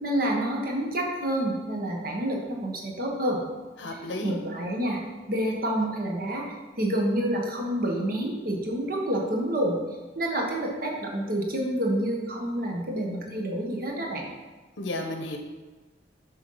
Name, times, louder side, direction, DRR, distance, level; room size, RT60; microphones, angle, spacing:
voice 1, 0.0-3.4 4.2-5.0 5.3-6.4 6.8-9.8 10.1-14.3, right 1 dB, 50° right, 0 dB, 1.3 m, -28 dB
voice 2, 3.8-4.4 14.8-15.4, left 1 dB, 85° left, 4 dB, 1.0 m, -32 dB
7.1 x 4.0 x 5.5 m, 1.3 s
head